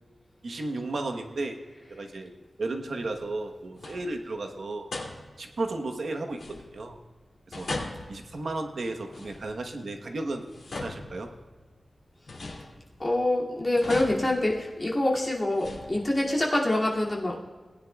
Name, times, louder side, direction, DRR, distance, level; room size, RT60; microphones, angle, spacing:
voice 1, 0.4-1.6 1.9-2.3 2.6-4.9 5.4-6.4 6.7-7.0 7.5-7.7 8.1-10.4 10.8-11.3, right 2 dB, 65° right, 4 dB, 1.0 m, -33 dB
sound 1, 3.0-3.5 3.7-4.3 4.9-5.6 6.3-7.0 7.5-9.8 10.3-11.7 12.3-13.2 13.8-15.0 15.5-16.4, left 2 dB, 65° left, 2.5 m, -40 dB
voice 2, 13.0-17.4, left 1 dB, 25° left, -4 dB, 2.3 m, -25 dB
19.5 x 10.0 x 2.3 m, 1.4 s
wide cardioid pair, 120°, 0 cm